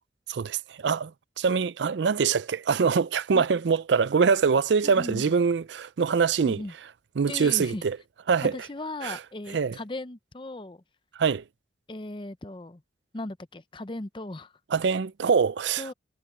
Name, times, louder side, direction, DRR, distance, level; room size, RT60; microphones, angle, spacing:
voice 1, 0.3-1.1 1.4-6.6 7.2-8.0 8.3-8.6 9.0-9.2 9.5-9.8 11.2-11.4 14.7-15.9, right 5 dB, 80° right, 0.4 m, -24 dB
voice 2, 4.8-5.2 6.4-6.7 7.3-7.8 8.4-10.8 11.9-12.8 13.1-14.5 15.8-15.9, left 2 dB, 25° left, 0.6 m, -37 dB
head